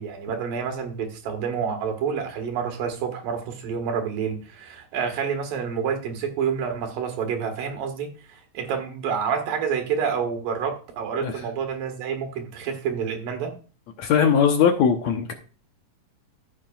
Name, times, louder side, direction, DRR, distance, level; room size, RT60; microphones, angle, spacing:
voice 1, 0.0-13.5, right 6 dB, 80° right, 3.3 m, -28 dB
voice 2, 14.0-15.3, left 7 dB, 70° left, 1.9 m, -20 dB
14.0 x 7.5 x 2.4 m
omnidirectional pair, 3.9 m